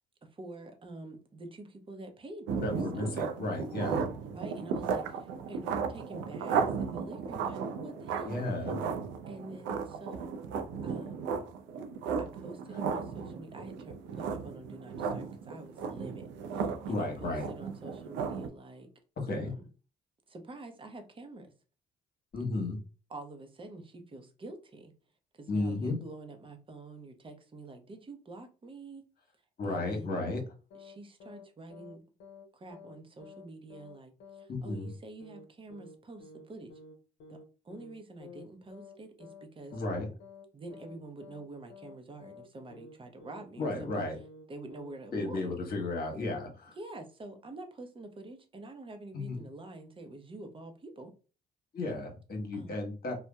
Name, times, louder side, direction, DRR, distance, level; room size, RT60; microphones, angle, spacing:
voice 1, 0.3-2.8 4.3-8.3 9.3-10.4 10.8-11.3 12.2-16.3 16.5-18.9 19.3-19.6 20.3-21.5 23.1-24.9 25.3-29.0 29.6-30.2 30.8-32.0 32.5-36.7 37.3-37.4 37.6-39.7 40.5-44.1 44.5-45.4 46.8-51.1 52.5-52.8, right 2 dB, 25° right, 6 dB, 0.7 m, -47 dB
sound 1, 2.5-18.5, right 6 dB, 70° right, 0.4 m, -35 dB
voice 2, 2.6-4.0 8.2-8.8 16.9-17.5 19.2-19.5 22.3-22.8 25.5-26.0 29.6-30.4 34.5-34.9 39.7-40.1 43.6-44.2 45.1-46.7 49.1-49.5 51.7-53.2, left 2 dB, 50° left, 3 dB, 1.1 m, -33 dB
sound 2, 30.7-31.0 31.2-31.5 31.7-32.5 32.7-33.0 33.2-33.5 33.7-34.0 34.2-34.5 34.7-35.0 35.2-35.5 35.7-36.0 36.2-36.5 36.7-37.0 37.2-37.5 37.7-38.0 38.2-38.5 38.7-39.0 39.2-39.5 39.7-40.0 40.2-40.5 40.7-41.0 41.2-41.5 41.7-42.0 42.2-42.5 42.7-43.0 43.2-43.5 43.7-44.0 44.2-44.5 44.7-45.0 45.2-45.5 45.7-46.0 46.2-46.5, left 3 dB, 65° left, 0.7 m, -51 dB
2.7 x 2.2 x 2.2 m, 0.35 s
hypercardioid pair, 60°, 20 cm